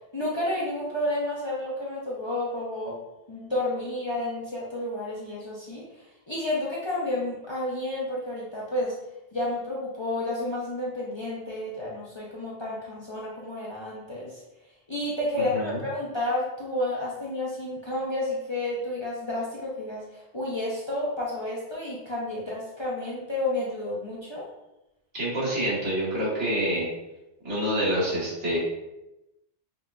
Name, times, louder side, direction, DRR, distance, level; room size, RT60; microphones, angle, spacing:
voice 1, 0.1-3.0 3.3-5.8 6.3-8.9 9.3-14.4 14.9-24.4, left 1 dB, 35° left, -5 dB, 0.5 m, -31 dB
voice 2, 25.1-26.9 27.4-28.6, equal, 90° right, -8 dB, 2.0 m, -27 dB
5.4 x 2.5 x 2.2 m, 0.93 s
omnidirectional pair, 1.2 m